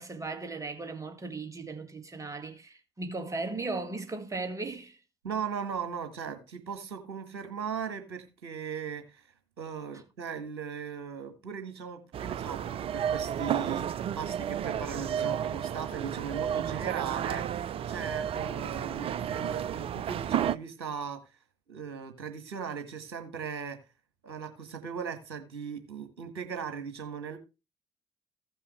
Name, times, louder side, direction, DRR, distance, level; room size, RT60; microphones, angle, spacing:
voice 1, 0.0-5.0, right 3 dB, 25° right, 2.0 m, -37 dB
voice 2, 5.2-9.3 9.6-21.2 21.7-23.8 24.2-27.4, right 6 dB, 75° right, 1.5 m, -38 dB
sound 1, 12.1-20.6, right 9 dB, 45° right, 0.5 m, -32 dB
15.5 x 5.6 x 3.2 m
figure-of-eight pair, 45°, 13 cm